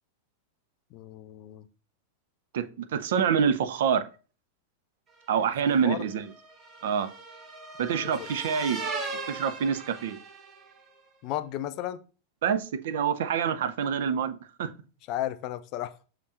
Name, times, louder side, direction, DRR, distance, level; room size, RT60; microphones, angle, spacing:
voice 1, 0.9-1.7 5.8-6.0 7.8-8.3 11.2-12.0 15.1-16.0, left 13 dB, 40° left, 0.4 m, -34 dB
voice 2, 2.5-4.0 5.3-6.3 6.8-7.1 7.8-8.8 9.3-10.2 12.4-14.7, right 7 dB, 55° right, 0.4 m, -26 dB
sound 1, 5.3-10.8, right 3 dB, 25° right, 0.9 m, -39 dB
6.8 x 2.9 x 2.5 m
figure-of-eight pair, 90°, 0 cm